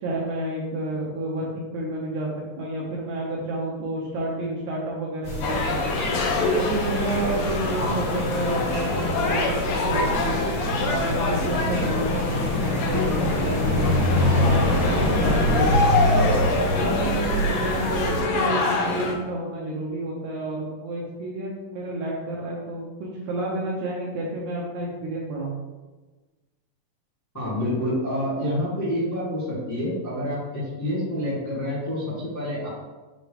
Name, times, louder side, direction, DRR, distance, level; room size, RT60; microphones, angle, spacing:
voice 1, 0.0-2.3 2.6-5.8 6.0-6.2 6.6-10.4 10.7-15.7 16.0-16.5 16.8-25.6, right 1 dB, 70° right, -3 dB, 1.9 m, -30 dB
sound 1, 5.2-18.2, equal, 45° left, 2.0 m, -25 dB
sound 2, 5.4-19.1, left 3 dB, 85° left, 2.9 m, -26 dB
voice 2, 27.3-32.7, left 1 dB, 15° left, -8 dB, 0.5 m, -28 dB
7.7 x 3.9 x 3.4 m, 1.2 s
omnidirectional pair, 4.2 m